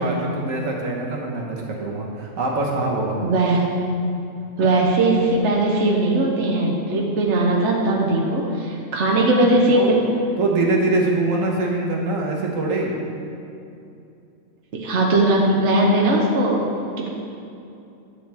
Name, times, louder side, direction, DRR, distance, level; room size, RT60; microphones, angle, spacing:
voice 1, 0.0-3.2 9.7-9.9 10.4-13.0, right 2 dB, 80° right, -1 dB, 1.6 m, -23 dB
voice 2, 3.2-3.6 4.6-10.0 14.7-16.6 17.0-17.1, right 2 dB, 65° right, -2 dB, 1.3 m, -19 dB
11.0 x 8.1 x 3.5 m, 2.7 s
omnidirectional pair, 1.3 m